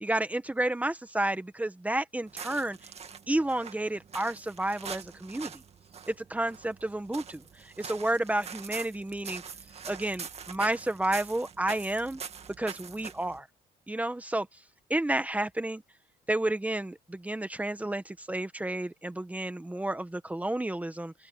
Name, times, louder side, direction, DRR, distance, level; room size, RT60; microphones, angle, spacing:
voice 1, 0.0-2.8 3.3-5.6 6.1-9.4 9.9-12.2 12.6-13.5 13.9-14.5 14.9-15.8 16.3-21.1, right 1 dB, 10° right, 1.6 m, -31 dB
sound 1, 2.2-13.4, right 6 dB, 40° right, 2.1 m, -44 dB
open air
cardioid pair, 110°, 17 cm